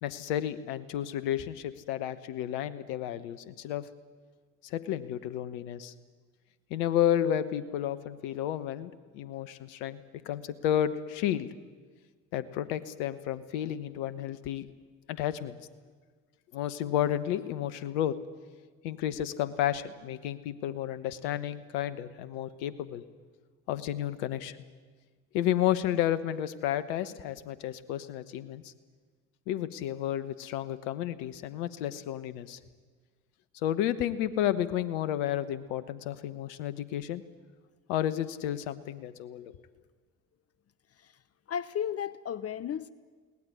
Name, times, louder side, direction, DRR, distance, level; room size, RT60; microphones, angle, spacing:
voice 1, 0.0-3.9 4.6-5.9 6.7-11.5 12.3-14.7 15.1-15.6 16.5-18.2 18.8-23.0 23.7-24.6 25.3-28.7 29.5-32.6 33.6-37.2 37.9-39.5, left 11 dB, 70° left, 14 dB, 1.2 m, -31 dB
voice 2, 41.5-42.9, left 9 dB, 40° left, 17 dB, 0.8 m, -34 dB
22.0 x 18.0 x 9.8 m, 1.5 s
hypercardioid pair, 55°, 37 cm